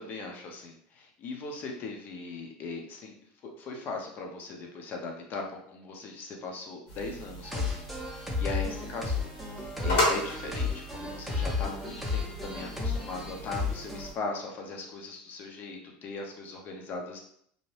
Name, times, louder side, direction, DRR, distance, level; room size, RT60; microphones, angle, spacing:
voice 1, 0.0-3.1 3.4-9.3 9.6-17.2, left 3 dB, 40° left, 1 dB, 0.7 m, -39 dB
sound 1, 6.9-14.1, left 1 dB, 65° left, 1.5 m, -35 dB
sound 2, 7.4-14.1, left 4 dB, ahead, 0.6 m, -33 dB
2.7 x 2.2 x 3.2 m, 0.66 s
supercardioid pair, 130°, 5 cm